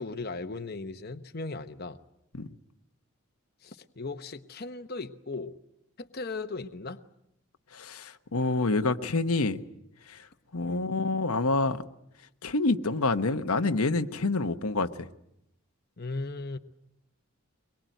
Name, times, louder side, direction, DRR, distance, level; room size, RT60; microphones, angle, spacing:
voice 1, 0.0-2.0 3.6-5.6 6.0-7.0 10.6-10.9 16.0-16.6, left 3 dB, 45° left, 7 dB, 0.9 m, -37 dB
voice 2, 7.7-9.6 10.1-10.3 10.5-11.8 12.4-15.1, left 3 dB, 90° left, 8 dB, 1.1 m, -27 dB
23.5 x 22.5 x 9.1 m, 0.81 s
head